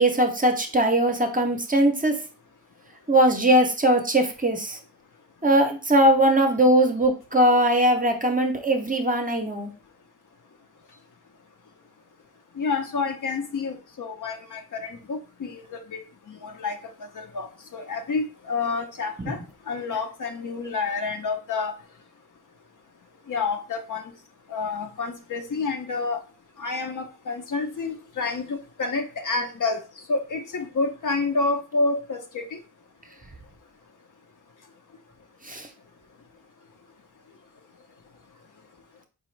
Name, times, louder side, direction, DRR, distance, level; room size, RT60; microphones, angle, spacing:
voice 1, 0.0-2.1 3.1-4.8 5.4-9.7 19.2-19.3 35.4-35.7, right 1 dB, 20° right, 4 dB, 0.7 m, -20 dB
voice 2, 12.6-16.0 16.3-16.8 17.2-19.4 19.7-21.7 23.3-24.1 24.5-26.2 26.6-29.8 30.1-32.6, left 4 dB, 50° left, 5 dB, 0.7 m, -29 dB
4.8 x 2.4 x 3.1 m, 0.33 s
wide cardioid pair, 100°, 39 cm